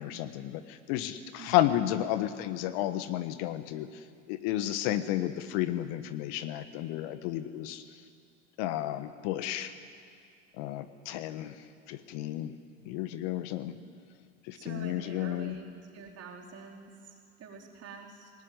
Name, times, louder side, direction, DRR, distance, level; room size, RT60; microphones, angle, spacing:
voice 1, 0.0-3.9 4.3-7.8 8.6-9.7 10.6-11.6 11.9-12.5 12.8-13.8 14.5-15.6, left 13 dB, 65° left, 11 dB, 1.5 m, -32 dB
voice 2, 1.4-1.7 14.5-15.6 15.9-18.3, right 5 dB, 40° right, -1 dB, 4.6 m, -46 dB
19.5 x 19.0 x 9.6 m, 2.3 s
hypercardioid pair, 80°, 37 cm